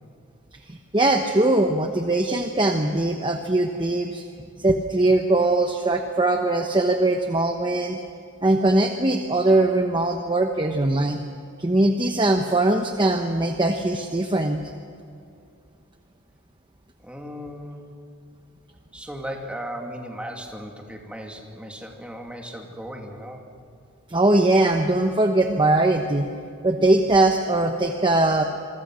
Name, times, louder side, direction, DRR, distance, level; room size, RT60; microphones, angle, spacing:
voice 1, 0.7-4.2 4.6-8.0 8.4-11.2 11.6-14.7 24.1-26.3 26.6-28.4, right 2 dB, 20° right, 4 dB, 1.0 m, -21 dB
voice 2, 17.0-17.9 18.9-23.4, equal, 5° right, 1 dB, 2.5 m, -36 dB
27.0 x 23.0 x 6.3 m, 2.5 s
head